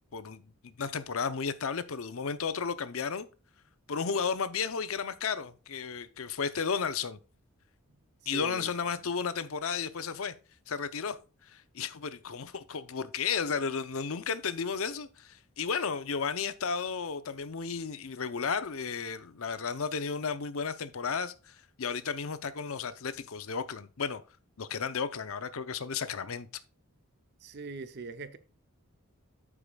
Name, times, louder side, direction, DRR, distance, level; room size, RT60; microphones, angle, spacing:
voice 1, 0.1-3.3 3.9-7.2 8.3-10.3 10.7-11.2 11.4-24.2 24.6-26.5, left 5 dB, 70° left, 0.6 m, -33 dB
voice 2, 8.3-8.7 27.4-28.4, right 3 dB, 45° right, 0.6 m, -41 dB
14.0 x 4.9 x 2.3 m
head